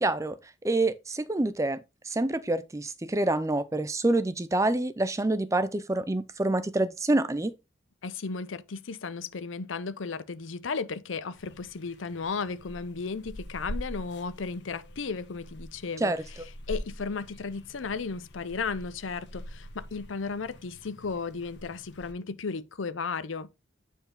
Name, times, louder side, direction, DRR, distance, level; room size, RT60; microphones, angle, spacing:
voice 1, 0.0-0.4 0.6-7.5 16.0-16.2, right 2 dB, 15° right, 0.4 m, -27 dB
voice 2, 8.0-16.1 16.7-23.5, left 4 dB, 85° left, 0.6 m, -34 dB
sound 1, 11.3-22.1, equal, 60° left, 1.1 m, -44 dB
8.9 x 4.6 x 3.7 m
head